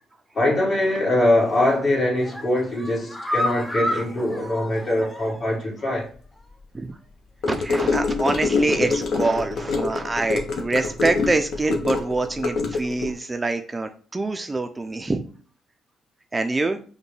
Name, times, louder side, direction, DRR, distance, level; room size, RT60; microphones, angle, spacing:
voice 1, 0.3-6.1, left 1 dB, 45° left, 1.8 m, -22 dB
sound 1, 1.4-1.8 2.2-5.6 5.9-6.0 6.4-6.5, left 1 dB, 10° left, 0.8 m, -30 dB
Gurgling / Car passing by / Sink (filling or washing), 7.4-13.1, left 4 dB, 65° left, 0.8 m, -25 dB
voice 2, 7.5-15.2 16.3-16.8, right 2 dB, 20° right, 0.3 m, -25 dB
5.2 x 2.2 x 3.2 m
cardioid pair, 90°, 0 cm